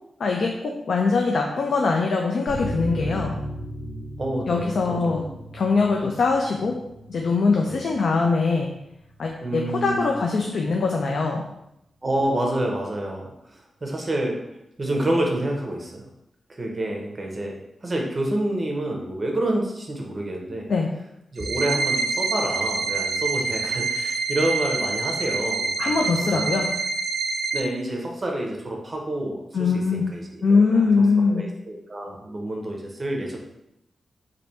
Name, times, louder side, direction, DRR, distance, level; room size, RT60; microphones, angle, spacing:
voice 1, 0.2-3.4 4.5-5.2 5.5-6.8 7.1-8.7 9.2-11.5 20.7-20.9 25.8-26.7 29.5-30.1 30.4-31.5, left 4 dB, 65° left, 1 dB, 0.4 m, -22 dB
sound 1, 2.5-9.6 9.8-9.9 10.3-10.4, equal, 5° left, 1.5 m, -37 dB
voice 2, 4.2-5.3 7.6-7.8 9.4-10.1 12.0-14.4 14.8-16.0 16.5-17.5 17.8-20.7 21.3-26.6 27.5-30.9 31.3-33.4, right 1 dB, 25° right, 0 dB, 0.7 m, -28 dB
sound 2, 21.4-27.6, right 4 dB, 65° right, 0.4 m, -26 dB
3.3 x 2.6 x 4.1 m, 0.83 s
wide cardioid pair, 135°, 0 cm